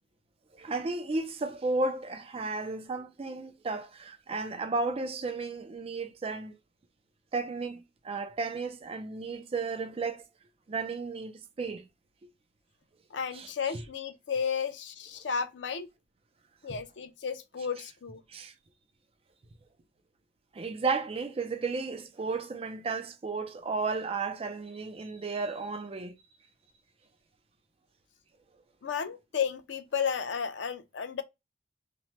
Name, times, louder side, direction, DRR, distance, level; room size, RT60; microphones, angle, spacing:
voice 1, 0.6-6.6 7.3-10.3 10.7-11.8 13.3-13.8 18.3-18.5 20.5-26.1, right 3 dB, 35° right, 0.4 m, -33 dB
voice 2, 13.1-15.9 16.6-18.2 28.8-31.2, left 6 dB, 80° left, 0.5 m, -33 dB
3.0 x 2.1 x 2.9 m
head